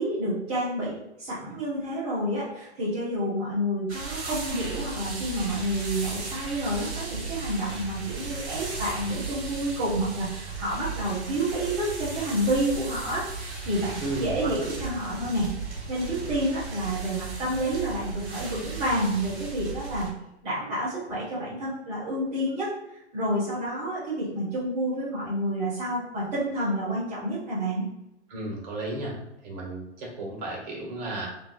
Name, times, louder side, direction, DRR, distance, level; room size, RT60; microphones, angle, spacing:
voice 1, 0.0-15.5 15.9-20.1 20.4-22.7 23.1-27.8, right 1 dB, 10° right, -10 dB, 0.3 m, -29 dB
sound 1, 3.9-20.1, right 4 dB, 65° right, 1.1 m, -36 dB
voice 2, 14.0-14.5 28.3-29.1 29.4-31.3, right 2 dB, 35° right, -3 dB, 1.1 m, -33 dB
2.8 x 2.2 x 2.5 m, 0.85 s
figure-of-eight pair, 115°, 34 cm